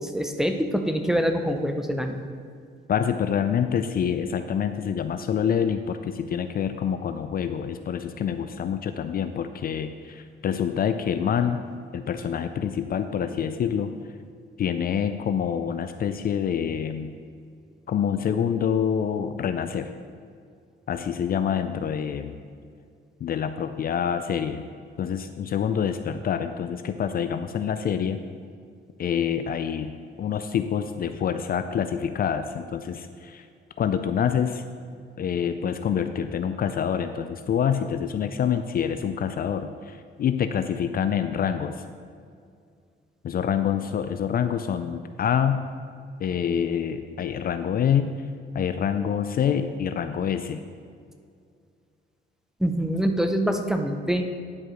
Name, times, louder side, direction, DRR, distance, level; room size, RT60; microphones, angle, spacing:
voice 1, 0.0-2.2 52.6-54.2, equal, ahead, 5 dB, 0.7 m, -25 dB
voice 2, 2.9-11.6 11.9-13.9 14.6-17.1 17.9-19.9 20.9-22.4 23.2-24.6 25.0-28.2 29.0-29.9 30.2-33.5 33.8-34.6 35.2-41.8 43.2-45.7 46.2-48.2 48.5-50.6, left 8 dB, 50° left, 9 dB, 0.4 m, -26 dB
10.5 x 4.7 x 4.9 m, 2.2 s
cardioid pair, 90°, 20 cm